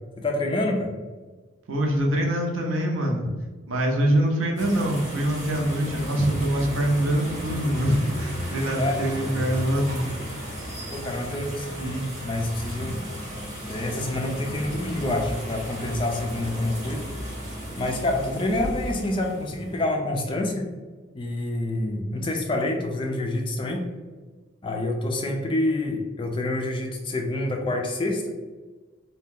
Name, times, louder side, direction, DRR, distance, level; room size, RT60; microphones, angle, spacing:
voice 1, 0.2-0.9 8.7-9.0 10.9-13.0 13.7-17.1 17.8-20.7 21.1-23.9 24.6-28.3, left 1 dB, 25° left, 2 dB, 0.3 m, -27 dB
voice 2, 1.7-3.3 3.7-10.0, right 1 dB, 85° right, 0 dB, 0.6 m, -24 dB
sound 1, 4.6-19.8, equal, 40° right, 1.3 m, -34 dB
2.7 x 2.2 x 3.5 m, 1.3 s
head